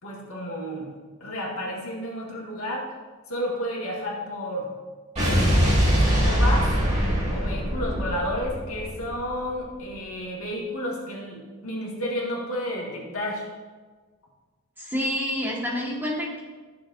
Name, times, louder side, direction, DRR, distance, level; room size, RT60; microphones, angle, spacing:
voice 1, 0.0-0.9 1.2-2.8 3.3-4.7 5.2-6.7 7.3-13.4, equal, 75° left, -4 dB, 2.1 m, -31 dB
Explosion, 5.2-9.5, equal, 30° right, 2.4 m, -22 dB
voice 2, 14.8-16.4, equal, 10° right, -5 dB, 1.6 m, -28 dB
12.5 x 6.7 x 2.7 m, 1.4 s
head